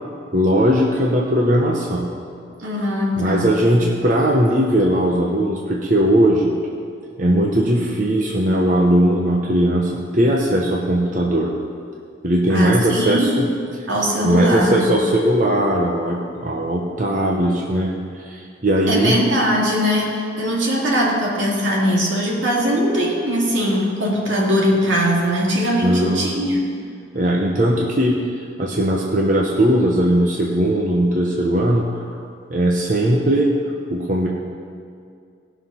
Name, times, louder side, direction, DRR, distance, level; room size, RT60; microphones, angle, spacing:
voice 1, 0.3-2.1 3.2-6.6 7.2-11.5 12.2-13.5 14.2-19.2 25.8-26.3 27.1-32.2 32.5-33.5 33.9-34.3, right 1 dB, 40° right, -2 dB, 0.9 m, -19 dB
voice 2, 2.6-3.5 12.5-13.4 13.9-15.0 18.9-26.6, equal, 80° right, -3 dB, 2.4 m, -20 dB
17.5 x 5.9 x 5.6 m, 2.3 s
head